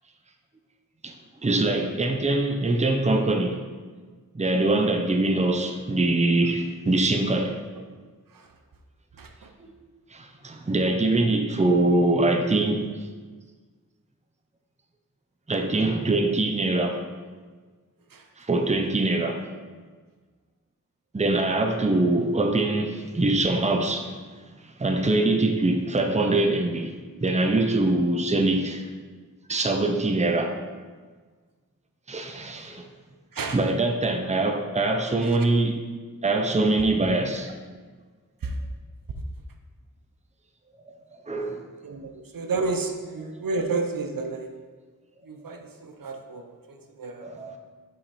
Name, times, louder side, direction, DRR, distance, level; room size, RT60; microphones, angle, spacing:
voice 1, 1.4-3.6 4.3-7.6 9.6-9.7 10.1-12.9 15.5-17.0 18.4-19.4 21.1-24.2 24.6-26.9 27.2-28.9 29.5-30.6 32.1-32.8 33.5-35.8 36.2-37.5 41.3-41.6 47.2-47.6, right 2 dB, 20° right, 4 dB, 0.6 m, -23 dB
voice 2, 41.8-44.5 45.3-47.3, right 3 dB, 75° right, 4 dB, 0.7 m, -31 dB
5.7 x 5.2 x 4.1 m, 1.5 s
wide cardioid pair, 70°, 34 cm